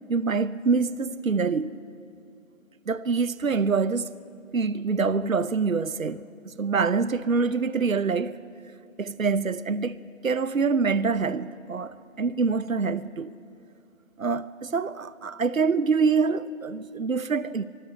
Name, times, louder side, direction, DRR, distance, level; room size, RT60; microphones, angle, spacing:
voice 1, 0.1-1.8 2.9-4.1 4.5-6.2 6.6-8.4 9.0-10.0 10.2-13.3 14.2-17.6, right 5 dB, 75° right, 0.8 m, -25 dB
23.5 x 13.5 x 8.8 m
figure-of-eight pair, 160°, 41 cm